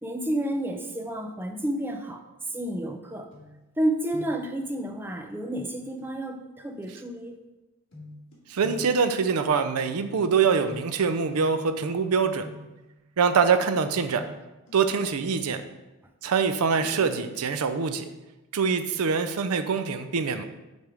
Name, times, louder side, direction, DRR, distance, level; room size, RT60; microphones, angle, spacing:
voice 1, 0.0-3.3 3.8-7.4, right 1 dB, 10° right, 5 dB, 0.5 m, -30 dB
sound 1, 3.3-3.8 4.1-4.6 6.0-6.1 7.9-12.0 12.4-12.9 13.9-15.7 16.7-17.4 17.8-17.9, left 1 dB, 60° left, 1.9 m, -46 dB
voice 2, 8.5-12.5 13.2-14.2 14.7-15.6 16.2-18.0 18.5-20.4, right 5 dB, 85° right, 9 dB, 0.5 m, -24 dB
6.5 x 3.5 x 4.7 m, 1.0 s
head